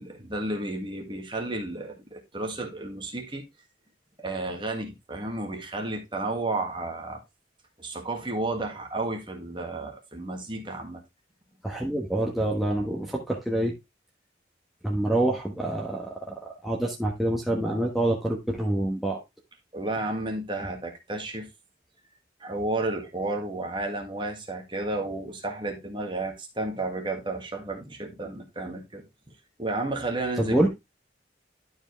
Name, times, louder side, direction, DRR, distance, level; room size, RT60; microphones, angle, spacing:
voice 1, 0.0-3.4 4.2-7.2 7.8-11.0 19.7-21.5 22.4-29.0 29.6-30.7, right 2 dB, 25° right, 1.8 m, -32 dB
voice 2, 11.6-13.7 14.8-19.2 30.4-30.7, right 1 dB, ahead, 1.2 m, -26 dB
11.5 x 4.8 x 3.2 m
head